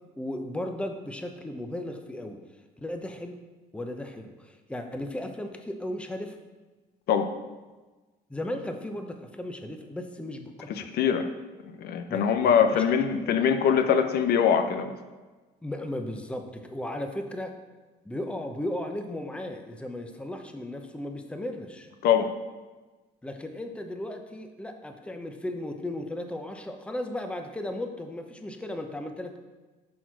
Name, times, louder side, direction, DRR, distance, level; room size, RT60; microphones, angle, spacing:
voice 1, 0.2-2.4 2.8-3.4 3.7-6.4 8.3-10.9 12.1-12.8 13.1-13.4 15.6-17.5 18.0-21.9 23.2-29.4, left 1 dB, 5° left, 5 dB, 0.8 m, -36 dB
voice 2, 10.7-11.3 11.8-15.0 22.0-22.3, left 7 dB, 70° left, 7 dB, 0.7 m, -23 dB
10.5 x 4.3 x 4.7 m, 1.2 s
cardioid pair, 110°, 17 cm